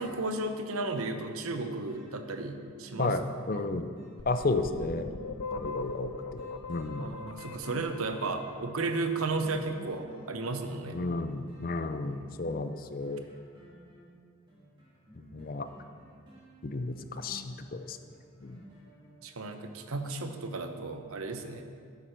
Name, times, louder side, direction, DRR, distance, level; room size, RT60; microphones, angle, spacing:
voice 1, 0.0-3.2 3.5-3.7 7.0-11.0 19.2-21.7, right 3 dB, 80° right, 7 dB, 0.9 m, -34 dB
sound 1, 1.0-19.7 20.1-20.2, equal, 20° right, 2.7 m, -53 dB
voice 2, 3.0-3.9 4.3-5.1 5.6-7.2 10.9-13.3 15.2-15.7 16.6-18.0 18.4-18.6, left 3 dB, 40° left, 9 dB, 0.5 m, -33 dB
sound 2, 4.2-9.0, left 3 dB, 90° left, 0.6 m, -40 dB
11.0 x 10.5 x 4.5 m, 2.3 s
head